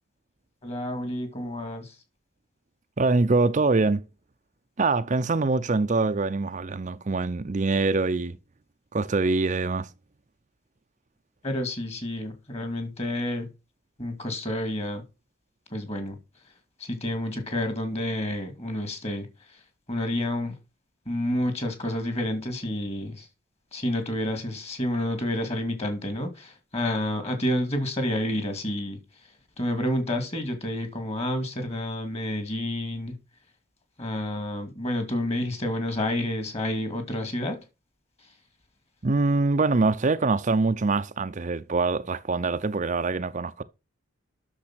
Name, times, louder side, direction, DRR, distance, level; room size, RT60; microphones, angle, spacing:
voice 1, 0.6-2.0 11.4-13.5 14.0-15.0 15.7-16.5 16.8-20.6 21.1-23.3 23.7-33.2 34.0-37.6 38.2-38.4, left 1 dB, 30° left, 2.5 m, -29 dB
voice 2, 3.0-4.1 4.8-8.4 8.9-9.9 39.0-43.6, right 3 dB, 40° right, 0.5 m, -24 dB
8.8 x 6.7 x 6.1 m
head